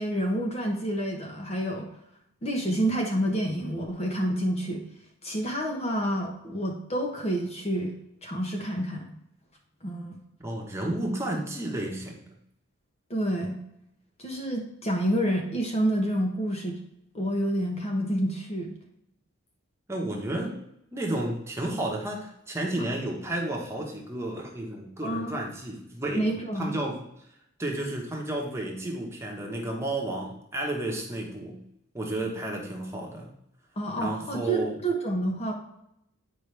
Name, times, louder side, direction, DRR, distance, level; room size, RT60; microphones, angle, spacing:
voice 1, 0.0-1.9 2.4-4.8 5.2-7.9 8.2-9.1 9.8-10.2 13.1-13.6 14.2-16.8 17.1-18.7 22.8-22.9 25.0-25.4 26.2-26.8 33.8-35.5, right 1 dB, 30° left, 1 dB, 1.0 m, -28 dB
voice 2, 10.4-12.3 19.9-20.6 20.9-26.3 26.5-27.0 27.6-31.6 31.9-33.3 34.0-34.8, right 1 dB, 10° right, -1 dB, 1.2 m, -32 dB
8.9 x 5.1 x 3.3 m, 0.78 s
head